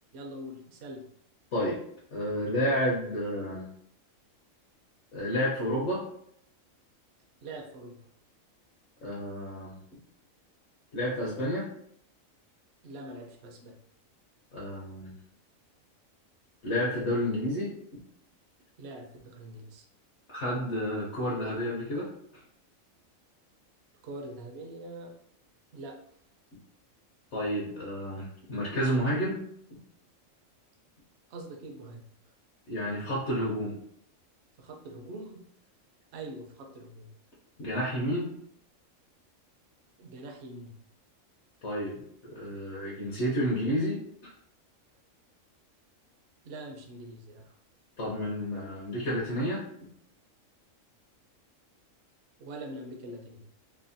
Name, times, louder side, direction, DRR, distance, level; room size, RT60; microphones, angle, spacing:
voice 1, 0.1-1.0 7.4-8.0 12.8-13.7 18.8-19.8 24.0-25.1 25.7-26.0 31.3-32.0 34.6-35.4 36.1-37.1 40.0-40.7 46.4-47.5 52.4-53.4, right 1 dB, 65° right, 2 dB, 0.7 m, -43 dB
voice 2, 2.1-3.6 5.1-6.0 9.0-9.7 10.9-11.7 14.5-15.1 16.6-17.7 20.3-22.1 27.3-29.4 32.7-33.8 37.6-38.3 41.6-44.3 48.0-49.6, equal, 60° left, -5 dB, 0.9 m, -30 dB
3.3 x 2.1 x 2.5 m, 0.70 s
omnidirectional pair, 1.4 m